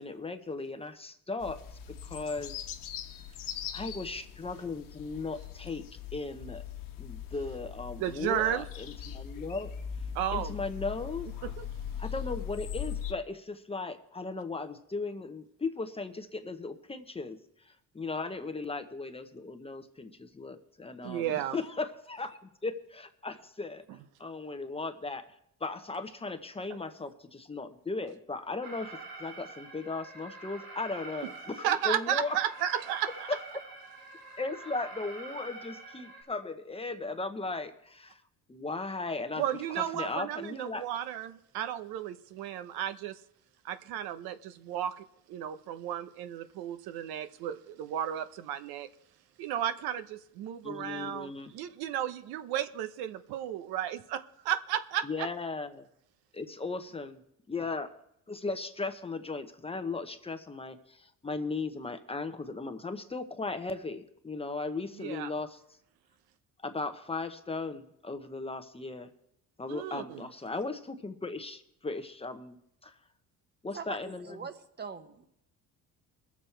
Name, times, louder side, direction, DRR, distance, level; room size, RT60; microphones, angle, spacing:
voice 1, 0.0-1.6 2.0-2.7 3.7-5.8 6.1-6.6 7.0-9.7 10.3-11.3 12.0-17.4 17.9-23.8 24.2-25.2 25.6-32.4 33.3-33.4 34.4-38.2 38.5-39.4 39.8-40.8 50.6-51.5 55.0-55.9 56.3-57.2 57.5-57.9 58.3-65.6 66.6-69.1 69.6-72.6 72.8-72.9 73.6-74.4, left 3 dB, 15° left, 0.8 m, -37 dB
sound 1, 1.4-13.1, left 9 dB, 65° left, 1.1 m, -40 dB
voice 2, 8.0-8.7 10.1-10.6 11.4-11.7 21.0-21.6 31.6-33.3 39.4-43.2 43.6-48.9 49.4-55.3 65.0-65.3 69.7-70.3, right 11 dB, 90° right, 0.8 m, -34 dB
Alarm, 28.6-36.2, right 3 dB, 70° right, 3.5 m, -46 dB
voice 3, 73.7-75.2, right 5 dB, 30° right, 1.1 m, -42 dB
21.5 x 7.3 x 4.5 m
cardioid pair, 115°, 36 cm